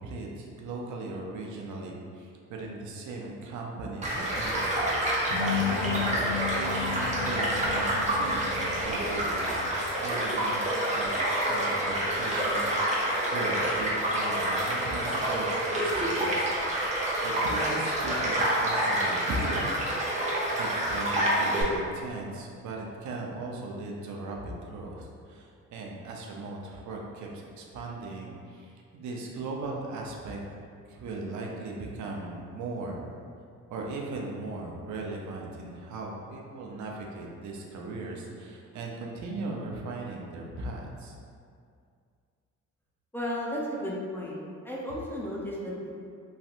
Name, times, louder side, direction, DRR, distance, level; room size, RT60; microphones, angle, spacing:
voice 1, 0.0-5.0 5.7-6.3 6.5-8.5 8.8-16.5 17.2-19.7 20.5-30.4 30.9-33.1 33.7-41.1, right 2 dB, 70° right, -1 dB, 0.6 m, -38 dB
sound 1, 3.8-9.7, left 7 dB, 85° left, 0.7 m, -35 dB
Child speech kid speaking / Stream / Car passing by, 4.0-21.6, right 1 dB, 25° right, 0.8 m, -28 dB
voice 2, 43.1-44.4 44.6-45.9, equal, 5° left, -5 dB, 0.5 m, -34 dB
3.1 x 2.6 x 2.4 m, 2.2 s
cardioid pair, 90°, 30 cm